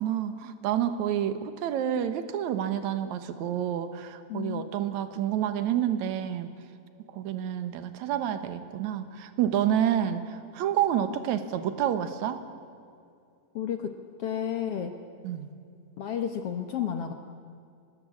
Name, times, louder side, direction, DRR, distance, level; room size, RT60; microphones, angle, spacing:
voice 1, 0.0-6.5 7.1-12.4 15.2-15.5, right 10 dB, 65° right, 10 dB, 2.3 m, -29 dB
voice 2, 4.3-4.6 13.5-13.9 14.2-14.9 16.0-17.1, left 9 dB, 70° left, 6 dB, 1.4 m, -31 dB
24.5 x 20.0 x 8.7 m, 2.4 s
omnidirectional pair, 4.1 m